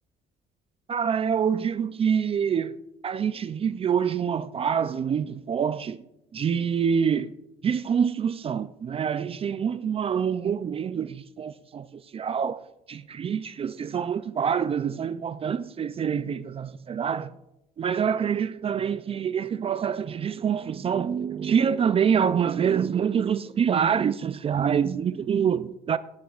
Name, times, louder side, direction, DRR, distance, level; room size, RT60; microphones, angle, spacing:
voice 1, 0.9-2.8 3.0-6.0 6.3-7.4 7.6-12.6 12.9-17.3 17.8-26.0, right 7 dB, 35° right, 0.4 m, -26 dB
17.5 x 9.5 x 2.5 m
cardioid pair, 110°, 17 cm